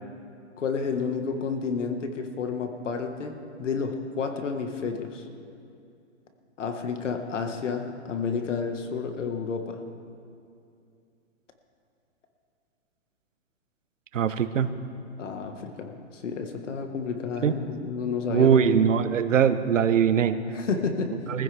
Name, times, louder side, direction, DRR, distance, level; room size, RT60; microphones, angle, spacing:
voice 1, 0.6-5.2 6.6-9.8 15.2-18.6 20.5-21.2, left 5 dB, 75° left, 5 dB, 1.7 m, -30 dB
voice 2, 14.1-14.7 17.4-17.5 18.3-20.4 21.3-21.4, right 8 dB, 90° right, 11 dB, 1.1 m, -21 dB
22.5 x 15.5 x 3.5 m, 2.5 s
hypercardioid pair, 175°, 37 cm